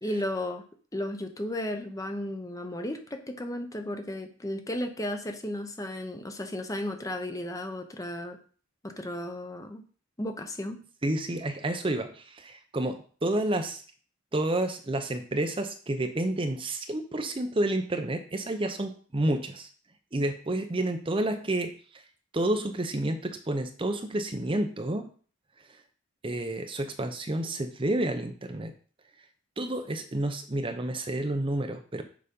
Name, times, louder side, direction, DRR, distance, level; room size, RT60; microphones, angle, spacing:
voice 1, 0.0-0.6 0.9-8.4 8.8-9.8 10.2-10.8, left 1 dB, 15° left, 6 dB, 0.8 m, -34 dB
voice 2, 11.0-13.8 14.3-19.7 20.1-22.0 22.3-25.1 25.7-25.8 26.2-28.7 29.6-32.0, right 1 dB, 25° right, 7 dB, 0.6 m, -30 dB
6.8 x 5.1 x 5.2 m, 0.42 s
head